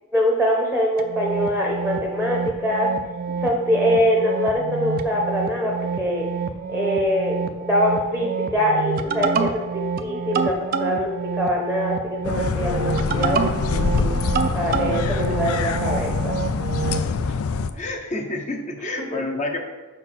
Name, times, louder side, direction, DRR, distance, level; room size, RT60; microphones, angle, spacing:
voice 1, 0.1-2.9 3.4-6.3 6.7-14.1 14.5-16.3 19.1-19.2, equal, ahead, -1 dB, 0.8 m, -23 dB
sound 1, 1.0-17.1, right 5 dB, 45° right, 0.4 m, -27 dB
sound 2, 12.2-17.7, left 4 dB, 85° left, 0.4 m, -25 dB
voice 2, 17.7-19.6, left 2 dB, 35° left, 2 dB, 0.7 m, -29 dB
5.3 x 4.4 x 5.7 m, 1.2 s
head